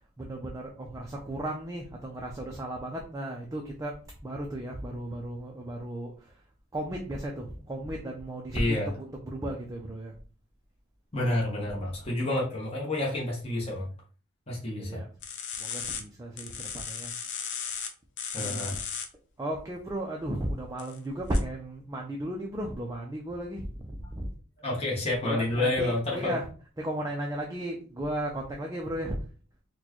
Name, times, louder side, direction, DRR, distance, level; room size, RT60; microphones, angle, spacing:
voice 1, 0.2-3.9 4.2-6.3 6.7-10.2 14.8-15.1 15.6-17.1 18.4-18.8 19.4-24.3 25.2-26.4 26.8-29.2, right 1 dB, 15° right, 0 dB, 0.4 m, -35 dB
voice 2, 8.5-8.9 11.1-13.9 14.5-15.0 18.3-18.8 24.6-26.4, left 1 dB, 25° left, -4 dB, 0.9 m, -29 dB
sound 1, 15.2-16.0 16.4-17.9 18.2-19.1 20.8-21.0 21.3-21.4, left 7 dB, 50° left, 0.5 m, -36 dB
4.2 x 2.2 x 2.9 m, 0.37 s
head